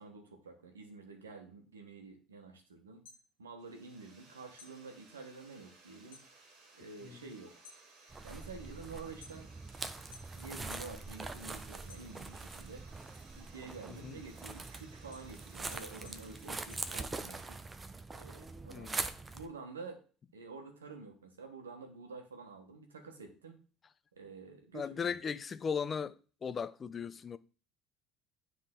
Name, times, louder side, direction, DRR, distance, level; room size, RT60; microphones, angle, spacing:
voice 1, 0.0-3.0 3.4-6.2 6.7-7.6 8.2-9.5 10.4-12.8 13.3-17.6 18.1-18.9 19.3-20.0 20.3-23.6 24.1-25.2, right 4 dB, 90° right, 1.2 m, -49 dB
sound 1, 2.8-4.2 4.5-6.3 6.7-7.1 7.5-9.7 10.1-11.0 11.3-12.5 13.0-17.5, left 5 dB, 85° left, 1.5 m, -58 dB
sound 2, 3.6-17.0, right 3 dB, 70° right, 2.0 m, -60 dB
sound 3, 8.1-19.5, right 3 dB, 25° right, 0.8 m, -43 dB
voice 2, 18.7-19.0 24.7-26.2 26.4-27.4, left 6 dB, 35° left, 0.5 m, -37 dB
9.5 x 3.7 x 3.7 m
hypercardioid pair, 65°, 0 cm